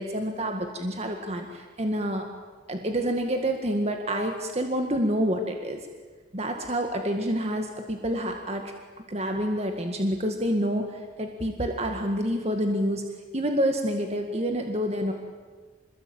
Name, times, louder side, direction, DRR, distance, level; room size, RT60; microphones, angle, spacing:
voice 1, 0.0-2.2 2.7-5.9 6.3-8.7 9.1-13.1 13.3-15.1, equal, 35° right, 4 dB, 2.0 m, -28 dB
27.5 x 21.0 x 8.9 m, 1.4 s
head